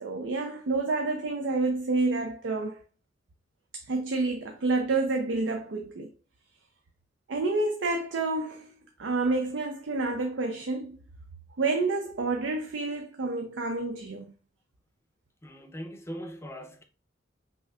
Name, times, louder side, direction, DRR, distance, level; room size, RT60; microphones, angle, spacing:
voice 1, 0.0-2.8 3.7-6.1 7.3-11.0 11.6-14.3, right 3 dB, 85° right, 0.5 m, -29 dB
voice 2, 15.4-16.8, equal, 15° left, 0.5 m, -40 dB
5.4 x 2.7 x 2.3 m
head